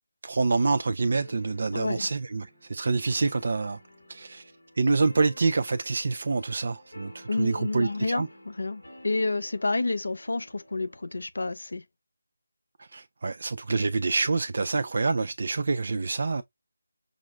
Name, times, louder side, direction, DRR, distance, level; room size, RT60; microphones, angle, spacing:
voice 1, 0.2-3.8 4.1-4.4 4.8-8.3 12.8-16.4, right 3 dB, 50° right, 0.4 m, -27 dB
sound 1, 1.2-11.2, left 1 dB, 85° left, 2.1 m, -52 dB
voice 2, 1.7-2.1 7.3-11.8, left 3 dB, 70° left, 0.6 m, -29 dB
6.0 x 2.0 x 2.3 m
figure-of-eight pair, 165°, 0 cm